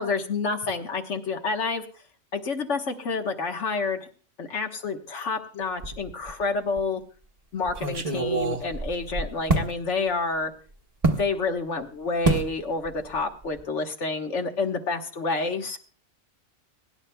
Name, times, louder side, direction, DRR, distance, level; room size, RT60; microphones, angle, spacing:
voice 1, 0.0-1.8 2.3-4.1 4.4-7.0 7.5-10.5 11.2-15.8, left 4 dB, 65° left, 5 dB, 1.5 m, -29 dB
sound 1, 5.8-6.4 6.8-6.9 7.7-9.7 11.0-11.3 12.2-12.5 12.8-13.2 13.4-13.6, right 3 dB, 30° right, 1.0 m, -26 dB
23.5 x 11.0 x 2.2 m, 0.40 s
omnidirectional pair, 1.4 m